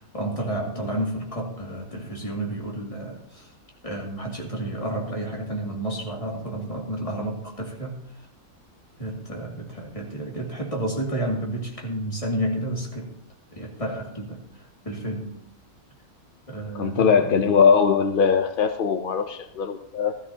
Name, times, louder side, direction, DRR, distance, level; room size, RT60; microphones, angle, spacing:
voice 1, 0.0-3.5 3.8-8.0 9.0-13.1 13.5-15.3 16.5-17.4, right 1 dB, 20° left, -1 dB, 2.3 m, -31 dB
voice 2, 16.7-20.2, left 6 dB, 60° left, 8 dB, 0.5 m, -20 dB
15.5 x 13.5 x 2.8 m, 0.71 s
omnidirectional pair, 1.6 m